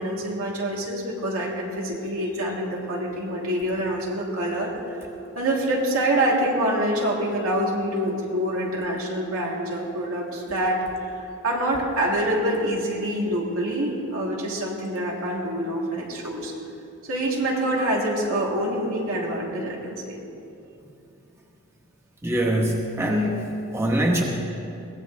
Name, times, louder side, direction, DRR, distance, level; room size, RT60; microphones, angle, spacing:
voice 1, 0.0-4.7 5.3-16.5 17.1-20.2, right 1 dB, 90° right, -4 dB, 3.2 m, -26 dB
voice 2, 22.2-24.2, right 1 dB, 10° right, -1 dB, 1.3 m, -23 dB
22.0 x 17.5 x 3.3 m, 2.7 s
head